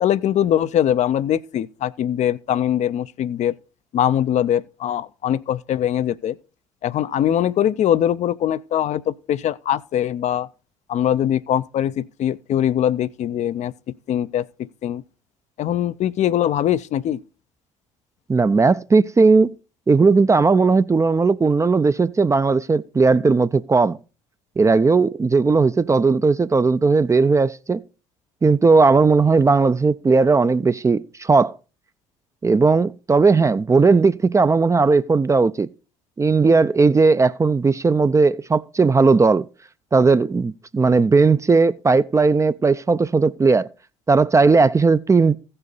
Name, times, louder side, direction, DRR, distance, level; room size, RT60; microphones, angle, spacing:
voice 1, 0.0-3.5 3.9-6.4 6.8-10.5 10.9-13.7 14.1-15.0 15.6-17.2, left 10 dB, 45° left, 0.5 m, -22 dB
voice 2, 18.3-19.5 19.9-24.0 24.6-27.8 28.4-31.5 32.4-35.7 36.2-39.5 39.9-43.7 44.1-45.4, right 4 dB, 20° right, 0.4 m, -17 dB
15.5 x 5.5 x 4.0 m
hypercardioid pair, 55°, 17 cm